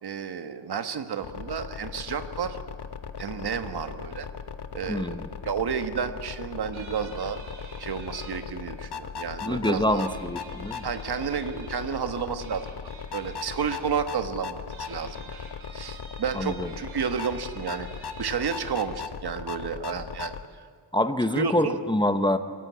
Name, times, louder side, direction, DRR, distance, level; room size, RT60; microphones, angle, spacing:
voice 1, 0.0-2.6 3.2-4.3 4.7-5.2 5.4-7.4 7.8-10.0 10.8-12.7 13.1-15.4 15.7-17.9 18.2-20.7 21.3-21.8, right 6 dB, 50° right, 9 dB, 1.4 m, -31 dB
sound 1, 1.2-20.5, left 6 dB, 55° left, 1.1 m, -38 dB
voice 2, 4.9-5.3 9.4-10.9 16.3-16.7 20.9-22.4, left 1 dB, 10° left, 9 dB, 0.7 m, -26 dB
sound 2, 6.7-8.3 9.9-12.0 12.4-13.8 14.6-18.8, right 3 dB, 75° right, 6.4 m, -48 dB
24.0 x 14.5 x 9.4 m, 2.1 s
wide cardioid pair, 160°, 49 cm